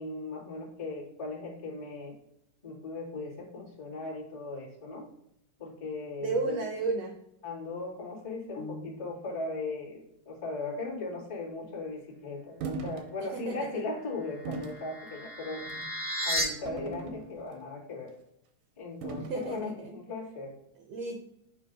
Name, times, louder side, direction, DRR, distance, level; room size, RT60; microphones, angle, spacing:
voice 1, 0.0-2.1 2.6-5.1 5.6-6.6 7.4-15.7 16.2-18.1 18.8-20.5, left 3 dB, 15° left, -6 dB, 1.4 m, -38 dB
voice 2, 6.2-7.1 13.3-13.8 19.3-19.9 20.9-21.2, right 4 dB, 75° right, 2 dB, 1.6 m, -33 dB
sound 1, 8.6-9.6, left 2 dB, 85° left, 1.3 m, -44 dB
sound 2, 12.6-13.0 13.5-13.7 14.5-14.8 15.6-15.9 16.7-17.6 19.0-19.5, right 4 dB, 90° right, 2.4 m, -39 dB
sound 3, 14.2-16.4, equal, 45° left, 0.6 m, -34 dB
9.0 x 3.1 x 5.0 m, 0.78 s
omnidirectional pair, 3.6 m